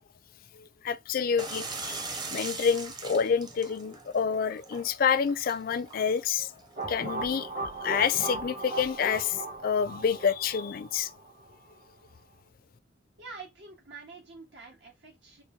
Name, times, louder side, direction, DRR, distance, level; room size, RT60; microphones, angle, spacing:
voice 1, 0.8-6.5 6.9-7.5 7.8-9.4 9.6-11.1, left 6 dB, 50° left, 0.4 m, -28 dB
sound 1, 1.4-6.8, right 3 dB, 25° right, 0.6 m, -41 dB
sound 2, 6.8-11.5, right 2 dB, 50° right, 1.2 m, -37 dB
voice 2, 13.2-15.4, right 4 dB, 85° right, 1.6 m, -47 dB
4.4 x 2.9 x 3.2 m
head